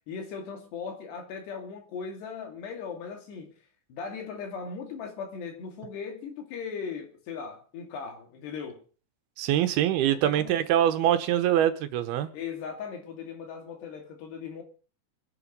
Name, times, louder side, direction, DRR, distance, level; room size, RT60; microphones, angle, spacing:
voice 1, 0.1-3.6 3.9-8.8 10.1-10.7 12.3-14.6, left 6 dB, 80° left, 4.7 m, -38 dB
voice 2, 9.4-12.3, right 11 dB, 75° right, 2.8 m, -24 dB
24.0 x 10.0 x 5.3 m
omnidirectional pair, 4.8 m